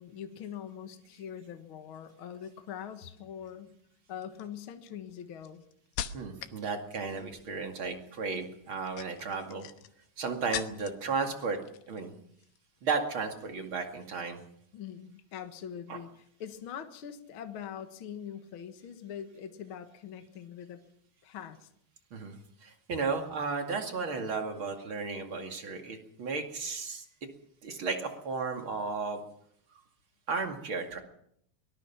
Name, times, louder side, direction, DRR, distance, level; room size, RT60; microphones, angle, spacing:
voice 1, 0.0-3.7 4.1-5.6 14.7-16.1 16.4-20.8 21.2-21.7, left 8 dB, 65° left, 7 dB, 1.2 m, -43 dB
sound 1, 3.1-3.5 4.2-6.6 6.9-7.4 8.7-11.1 11.4-12.1 12.3-12.6, left 11 dB, 85° left, 3.1 m, -41 dB
voice 2, 6.1-9.7 10.2-11.6 11.9-12.1 12.8-14.4 15.9-16.0 22.1-27.1 27.6-29.2 29.7-29.8 30.3-31.0, right 4 dB, 40° right, 4 dB, 2.4 m, -34 dB
23.0 x 20.5 x 6.0 m, 0.69 s
omnidirectional pair, 4.7 m